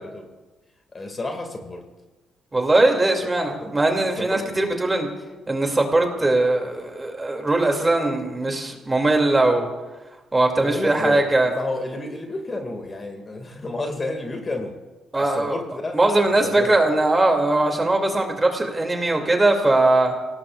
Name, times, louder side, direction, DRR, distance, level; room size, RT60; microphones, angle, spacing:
voice 1, 0.9-1.9 3.6-3.7 4.2-4.6 10.6-14.8 15.2-16.7, left 2 dB, 30° left, 4 dB, 2.2 m, -31 dB
voice 2, 2.5-5.1 5.5-9.7 10.3-11.5 15.1-15.6 15.9-20.1, right 2 dB, 20° right, 3 dB, 2.6 m, -20 dB
29.0 x 18.0 x 2.5 m, 1.2 s
cardioid pair, 90°, 0 cm